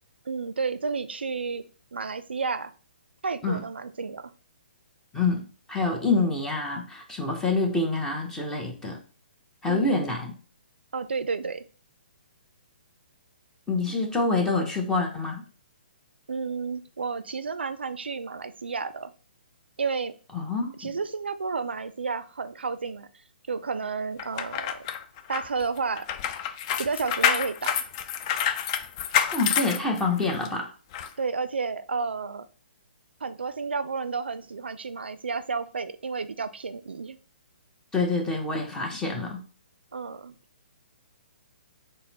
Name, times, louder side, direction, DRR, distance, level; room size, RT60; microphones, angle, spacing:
voice 1, 0.3-1.7 1.9-2.7 3.2-4.3 9.7-10.0 10.9-11.6 16.3-19.1 19.8-20.1 20.8-23.1 23.5-24.8 25.3-26.1 26.8-27.8 31.2-32.5 33.2-37.2 39.9-40.3, right 4 dB, 85° right, 12 dB, 0.4 m, -31 dB
voice 2, 5.1-5.4 5.7-9.0 9.6-10.3 13.7-15.4 20.3-20.7 29.3-30.7 37.9-39.4, left 3 dB, 10° left, 1 dB, 0.8 m, -26 dB
sound 1, 24.2-30.5 30.9-31.1, left 8 dB, 35° left, 0.3 m, -28 dB
4.1 x 2.1 x 4.0 m, 0.38 s
hypercardioid pair, 135°, 6 cm